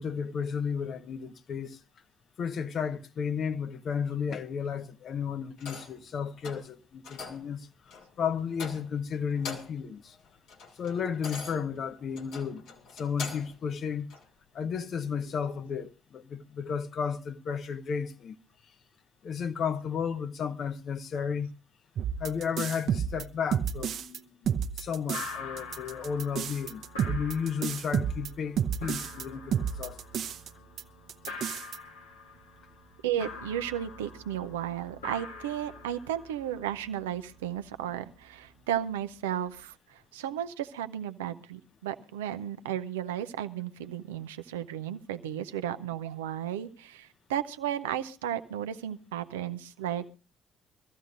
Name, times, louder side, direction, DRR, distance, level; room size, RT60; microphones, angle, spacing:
voice 1, 0.0-1.8 2.4-7.7 8.2-10.2 10.8-12.6 12.9-14.1 14.5-18.3 19.2-21.5 22.2-24.4 24.8-30.0, left 7 dB, 55° left, 0.9 m, -33 dB
sound 1, 5.6-6.0 6.4-6.7 7.0-7.5 7.9-8.1 8.5-9.0 9.3-9.9 10.2-13.6 14.1-14.2, left 4 dB, 70° left, 2.5 m, -42 dB
sound 2, 22.0-24.2 24.5-25.3 25.6-29.2 29.5-30.5 30.8-30.9 31.1-31.8, right 8 dB, 60° right, 0.9 m, -30 dB
sound 3, 25.1-39.6, left 3 dB, 90° left, 1.8 m, -45 dB
voice 2, 33.0-50.1, right 10 dB, 85° right, 0.6 m, -34 dB
23.5 x 14.0 x 2.6 m
hypercardioid pair, 50°, 0 cm